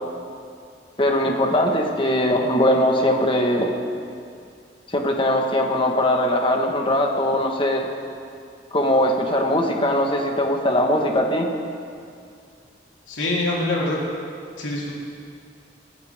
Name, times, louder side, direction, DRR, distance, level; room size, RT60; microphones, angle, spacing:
voice 1, 1.0-3.8 4.9-7.9 8.7-11.5, left 1 dB, 30° left, 1 dB, 1.6 m, -20 dB
voice 2, 13.1-14.0 14.6-14.9, left 2 dB, 85° left, -5 dB, 3.6 m, -24 dB
23.5 x 16.0 x 3.7 m, 2.3 s
head